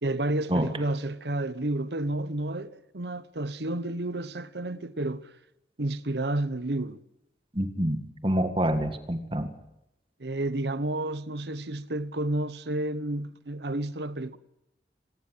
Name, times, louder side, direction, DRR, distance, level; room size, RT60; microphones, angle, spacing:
voice 1, 0.0-5.3 5.8-7.0 10.2-14.4, right 1 dB, 70° right, 1.1 m, -31 dB
voice 2, 7.5-9.5, right 1 dB, 30° right, 1.8 m, -27 dB
25.5 x 18.5 x 7.8 m
head